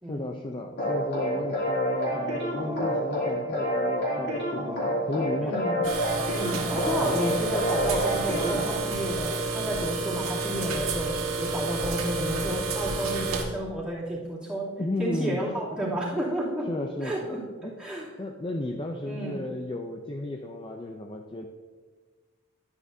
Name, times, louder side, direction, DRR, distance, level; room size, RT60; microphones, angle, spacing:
voice 1, 0.1-5.6 7.0-7.3 14.8-15.4 16.7-17.7 18.2-21.5, left 2 dB, 25° left, 2 dB, 0.5 m, -34 dB
sound 1, 0.8-8.8, equal, 50° left, 2.7 m, -28 dB
voice 2, 5.4-5.9 6.3-14.7 15.0-16.7 17.0-18.1 19.1-19.4, right 1 dB, 5° right, -9 dB, 2.7 m, -31 dB
sound 2, 5.8-13.4, right 3 dB, 90° right, 1.4 m, -30 dB
11.5 x 9.7 x 2.7 m, 1.4 s
head